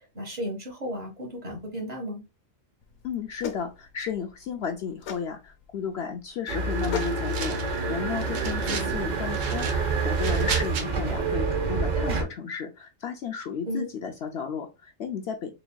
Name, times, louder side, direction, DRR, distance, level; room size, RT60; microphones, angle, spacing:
voice 1, 0.1-2.2 8.6-9.0 13.6-13.9, equal, 30° right, 1.5 m, -34 dB
sound 1, 2.8-8.9, left 8 dB, 85° left, 1.1 m, -41 dB
voice 2, 3.0-15.5, left 7 dB, 60° left, 0.8 m, -34 dB
sound 2, 6.5-12.2, right 4 dB, 45° right, 0.6 m, -27 dB
sound 3, 6.8-7.8 8.2-8.9 9.3-10.9, right 6 dB, 70° right, 1.1 m, -35 dB
4.0 x 3.4 x 2.2 m
omnidirectional pair, 1.4 m